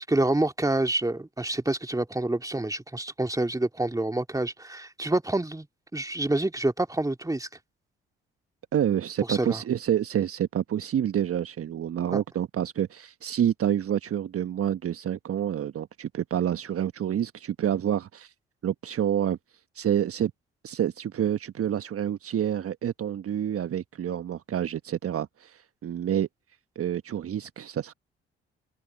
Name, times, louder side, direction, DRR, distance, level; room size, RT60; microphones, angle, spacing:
voice 1, 0.1-5.7 5.9-7.5 9.3-9.6 12.1-12.2, right 2 dB, 10° right, 2.7 m, -27 dB
voice 2, 8.7-18.3 18.6-19.4 19.7-20.3 20.6-26.3 26.7-27.9, right 10 dB, 45° right, 1.3 m, -28 dB
open air
hypercardioid pair, 45°, 31 cm